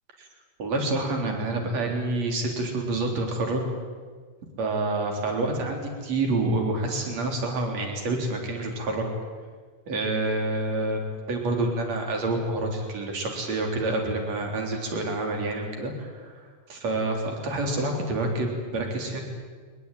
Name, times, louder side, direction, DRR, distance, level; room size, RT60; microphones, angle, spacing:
voice 1, 0.6-3.6 4.6-9.0 9.9-16.3 16.7-19.2, right 2 dB, 50° right, 2 dB, 4.8 m, -28 dB
23.0 x 20.5 x 9.1 m, 1.6 s
omnidirectional pair, 3.8 m